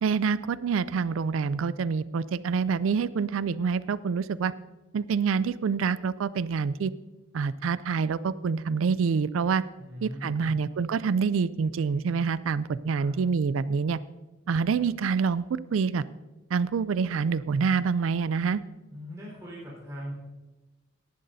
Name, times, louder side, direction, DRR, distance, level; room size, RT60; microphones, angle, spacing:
voice 1, 0.0-4.5 4.9-6.9 7.3-9.6 10.0-14.0 14.5-16.0 16.5-18.6, right 5 dB, 80° right, 17 dB, 0.4 m, -26 dB
voice 2, 9.8-10.5 12.9-13.1 18.9-20.1, equal, 15° right, -6 dB, 4.3 m, -40 dB
18.0 x 11.5 x 2.7 m, 1.1 s
head